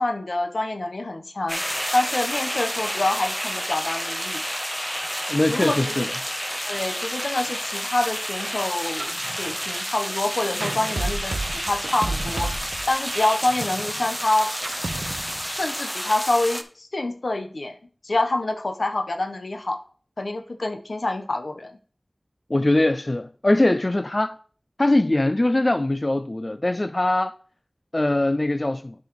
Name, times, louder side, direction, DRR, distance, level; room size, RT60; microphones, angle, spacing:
voice 1, 0.0-1.6 1.9-4.4 5.5-6.1 6.6-12.5 12.9-14.5 15.5-17.8 18.0-19.8 20.2-21.8, left 2 dB, 85° left, 0.9 m, -26 dB
sound 1, 1.5-16.6, equal, ahead, 0.8 m, -30 dB
voice 2, 5.3-6.1 22.5-24.3 24.8-27.3 27.9-28.9, left 1 dB, 40° left, 0.3 m, -22 dB
sound 2, 8.4-15.9, right 2 dB, 85° right, 0.5 m, -33 dB
10.5 x 5.5 x 3.1 m
wide cardioid pair, 55°, 0 cm